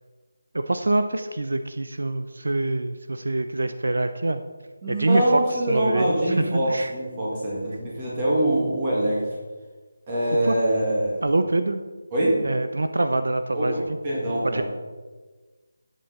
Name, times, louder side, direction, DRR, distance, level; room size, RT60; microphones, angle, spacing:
voice 1, 0.5-4.4 4.9-6.9 10.4-10.6 11.2-11.8 12.4-13.8 14.4-14.6, right 2 dB, 75° right, 9 dB, 0.7 m, -25 dB
voice 2, 4.8-9.2 10.1-11.2 12.1-12.4 13.5-14.6, right 1 dB, 15° right, -6 dB, 2.3 m, -24 dB
11.5 x 8.4 x 4.2 m, 1.3 s
figure-of-eight pair, 180°, 0 cm